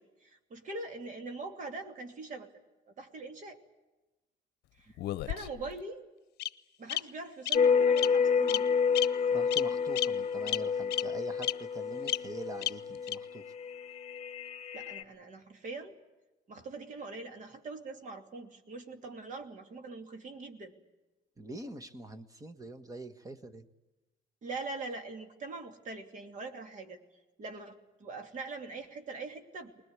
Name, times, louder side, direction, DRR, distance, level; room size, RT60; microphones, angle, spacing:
voice 1, 0.0-2.5 3.0-3.6 4.8-4.9 5.3-6.0 6.8-8.7 14.7-16.0 16.5-20.7 24.4-27.0 27.4-29.7, right 3 dB, 50° right, 5 dB, 2.8 m, -42 dB
Bird vocalization bird call bird song, 5.0-5.7 6.4-6.5 6.9-7.0 7.5-7.6 8.0-8.1 8.5-8.6 8.9-9.1 9.5-9.6 10.0-10.1 10.5-10.6 10.9-11.0 11.4-11.5 12.1-12.2 12.6-12.7 13.1-13.2, left 16 dB, 75° left, 0.7 m, -31 dB
sound 1, 7.5-15.0, left 6 dB, 40° left, 1.3 m, -29 dB
voice 2, 9.3-13.5 21.4-23.7, right 2 dB, 20° right, 10 dB, 1.5 m, -44 dB
21.0 x 20.5 x 9.7 m, 1.1 s
cardioid pair, 110°, 17 cm